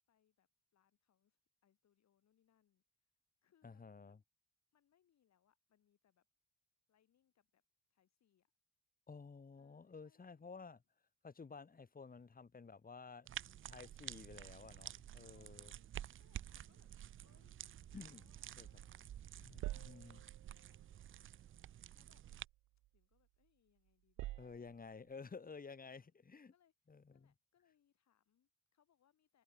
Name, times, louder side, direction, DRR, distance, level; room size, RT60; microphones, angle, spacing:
voice 1, 0.1-3.1 3.4-4.2 4.7-6.3 6.9-7.6 7.9-8.5 9.5-10.7 12.1-12.3 14.3-14.8 15.2-16.9 17.2-19.2 19.6-20.2 20.5-20.8 21.9-22.2 22.9-25.4 25.8-26.1 26.5-26.7 27.1-29.4, left 9 dB, 60° left, 7.3 m, -79 dB
voice 2, 3.6-4.2 9.1-10.8 11.2-13.3 13.7-15.7 17.9-18.3 18.6-18.7 19.4-20.2 24.4-26.5 26.9-27.3, left 5 dB, 30° left, 2.3 m, -53 dB
sound 1, 13.3-22.4, right 11 dB, 45° right, 0.5 m, -51 dB
sound 2, 16.4-19.0 19.2-23.5 23.9-25.1, right 17 dB, 80° right, 0.8 m, -52 dB
cardioid pair, 90°, 30 cm